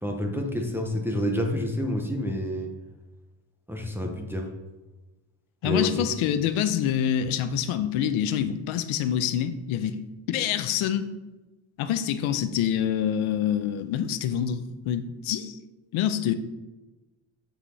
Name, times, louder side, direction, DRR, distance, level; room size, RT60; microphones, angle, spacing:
voice 1, 0.0-2.7 3.7-4.5 5.6-6.1, left 1 dB, 5° right, 1 dB, 0.5 m, -28 dB
voice 2, 5.6-10.0 10.3-11.1 11.8-15.6 15.9-16.3, left 9 dB, 85° left, 10 dB, 0.8 m, -26 dB
7.4 x 5.9 x 4.1 m, 1.1 s
cardioid pair, 175°, 47 cm